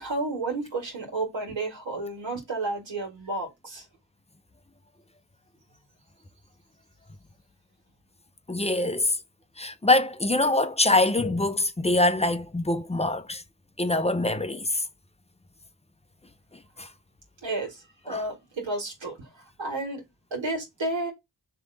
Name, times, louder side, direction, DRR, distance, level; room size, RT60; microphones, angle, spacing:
voice 1, 0.0-3.8 17.4-20.0 20.3-21.1, right 2 dB, 90° right, 2.0 m, -32 dB
voice 2, 8.5-9.2 9.6-13.4 13.8-14.8 16.8-16.9 18.1-18.2, left 2 dB, 15° left, 0.5 m, -24 dB
3.4 x 3.0 x 3.9 m
cardioid pair, 50°, 44 cm